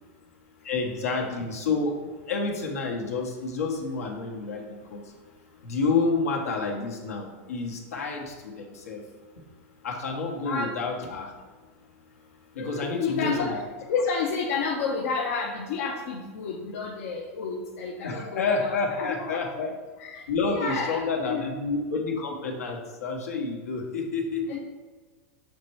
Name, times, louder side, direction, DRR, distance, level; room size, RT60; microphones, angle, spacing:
voice 1, 0.6-1.9 2.3-5.1 5.6-9.0 9.8-11.3 12.5-13.6 18.0-19.7 20.3-24.4, left 4 dB, 90° left, 0 dB, 1.1 m, -29 dB
voice 2, 12.6-13.6 13.9-19.4 20.0-21.5 24.5-24.6, left 5 dB, 70° left, -1 dB, 0.7 m, -30 dB
6.5 x 3.2 x 4.6 m, 1.4 s
hypercardioid pair, 110°, 8 cm